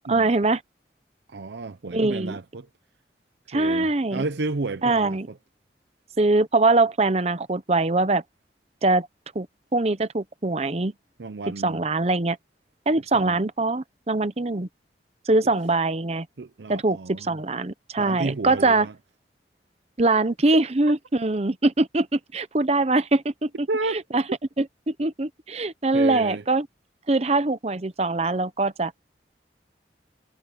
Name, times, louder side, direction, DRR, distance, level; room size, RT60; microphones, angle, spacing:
voice 1, 0.1-0.6 1.9-2.4 3.5-4.2 4.8-5.3 6.2-8.2 8.8-9.1 9.3-9.5 9.7-10.9 11.6-12.4 12.9-14.7 15.3-16.3 16.7-18.9 20.0-23.5 24.1-24.2 24.6-26.7 27.1-28.9, right 2 dB, 35° right, 0.8 m, -22 dB
voice 2, 1.3-2.7 3.5-5.4 11.2-11.8 13.1-13.4 16.4-17.4 18.0-18.9 23.7-24.0 25.9-26.4, right 3 dB, 75° right, 0.7 m, -32 dB
head